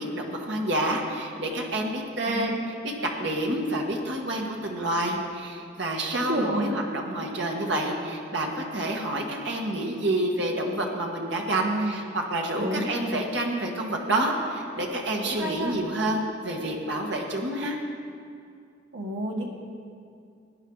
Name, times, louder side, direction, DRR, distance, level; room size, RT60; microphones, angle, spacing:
voice 1, 0.0-17.8, right 1 dB, 65° right, 0 dB, 1.7 m, -28 dB
voice 2, 2.3-2.7 6.1-6.7 11.6-12.0 12.6-12.8 15.2-15.7 18.9-19.5, right 1 dB, 85° right, -1 dB, 1.7 m, -30 dB
17.5 x 10.5 x 4.0 m, 2.4 s
head